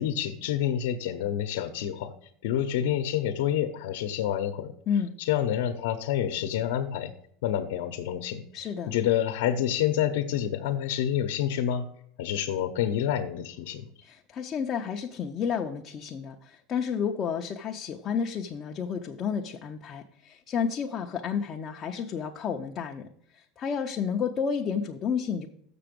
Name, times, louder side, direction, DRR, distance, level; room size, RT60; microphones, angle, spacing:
voice 1, 0.0-2.1 2.4-4.7 5.2-7.1 7.4-11.8 12.2-13.8, left 10 dB, 70° left, 6 dB, 0.7 m, -28 dB
voice 2, 8.5-8.9 14.0-25.5, left 7 dB, 25° left, 1 dB, 0.5 m, -31 dB
6.8 x 6.8 x 5.1 m, 0.67 s
supercardioid pair, 175°, 0 cm